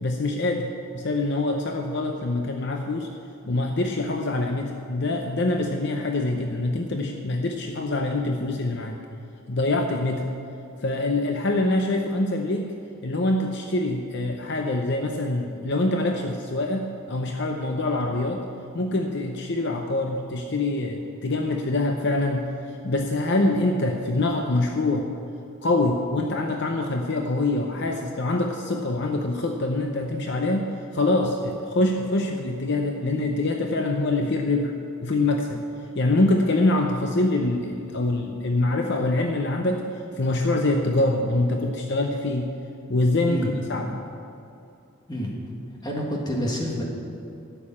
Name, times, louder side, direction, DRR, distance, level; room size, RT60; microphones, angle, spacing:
voice 1, 0.0-3.1 3.5-9.0 9.5-10.3 10.8-12.7 13.0-18.5 18.7-25.1 25.6-34.7 35.0-35.6 35.9-42.5 42.9-44.0, left 2 dB, 55° left, 3 dB, 0.7 m, -25 dB
voice 2, 45.8-46.8, equal, 20° left, -2 dB, 1.8 m, -28 dB
11.5 x 7.0 x 8.6 m, 2.7 s
head